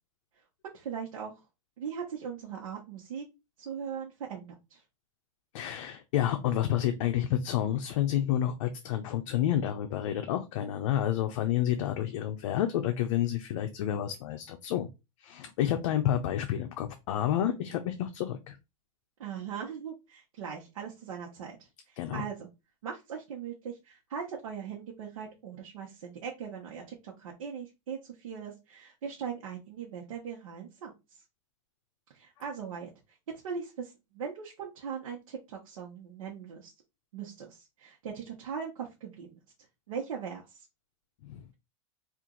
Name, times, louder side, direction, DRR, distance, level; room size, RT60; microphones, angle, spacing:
voice 1, 0.6-1.4 1.8-3.2 3.6-4.8 19.2-22.5 22.8-31.2 32.1-33.2 33.4-36.7 37.1-39.4 39.9-40.7, right 7 dB, 85° right, -1 dB, 1.0 m, -40 dB
voice 2, 5.5-14.9 15.2-18.6 22.0-22.3 41.2-41.6, left 11 dB, 65° left, 6 dB, 0.6 m, -29 dB
2.9 x 2.5 x 3.8 m, 0.25 s
supercardioid pair, 145°, 17 cm